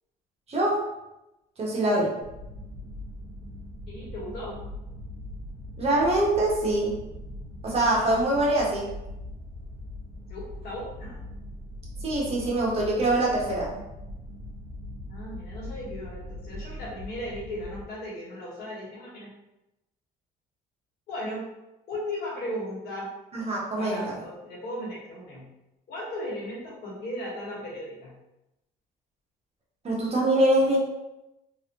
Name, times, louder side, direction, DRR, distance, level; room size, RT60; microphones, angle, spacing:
voice 1, 0.5-0.8 1.6-2.1 5.8-7.0 7.6-8.9 12.0-13.7 23.3-24.1 29.8-30.8, right 1 dB, 35° right, -4 dB, 1.1 m, -24 dB
sound 1, 2.2-17.8, left 1 dB, 70° right, 1.0 m, -41 dB
voice 2, 3.9-4.5 10.3-11.2 15.1-19.3 21.1-21.5 21.9-23.1 23.8-25.5 25.9-28.1, left 1 dB, 70° left, -5 dB, 1.5 m, -36 dB
3.2 x 2.5 x 3.0 m, 0.94 s
cardioid pair, 110°, 17 cm